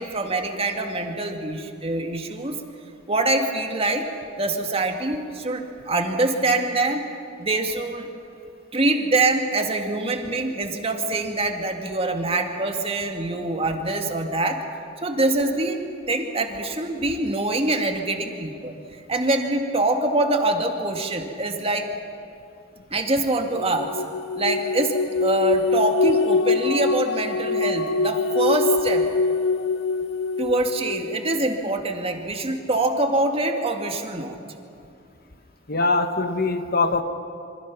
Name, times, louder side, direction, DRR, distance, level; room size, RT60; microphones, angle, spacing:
voice 1, 0.0-2.6 3.1-4.1 4.4-7.1 7.4-8.1 8.7-14.6 15.0-18.7 19.1-21.9 22.9-23.9 24.4-29.1 30.4-34.4, right 2 dB, 30° right, 4 dB, 2.0 m, -24 dB
sound 1, 23.5-31.3, left 3 dB, 70° left, 0.5 m, -24 dB
voice 2, 35.7-37.0, left 3 dB, 50° left, 8 dB, 1.3 m, -22 dB
27.0 x 25.0 x 6.0 m, 2.5 s
head